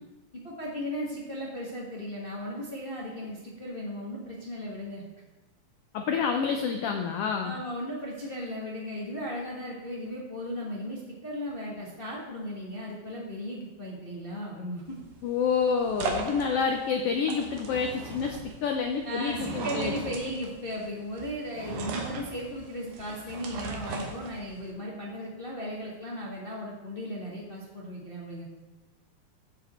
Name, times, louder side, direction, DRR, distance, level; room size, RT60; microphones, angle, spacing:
voice 1, 0.3-5.0 7.4-15.0 19.0-28.4, equal, 45° left, -3 dB, 0.7 m, -36 dB
voice 2, 5.9-7.6 15.2-19.9, left 6 dB, 80° left, 4 dB, 1.3 m, -28 dB
sound 1, 14.9-24.7, right 3 dB, 75° right, 2.6 m, -38 dB
15.0 x 5.1 x 4.2 m, 1.2 s
omnidirectional pair, 3.5 m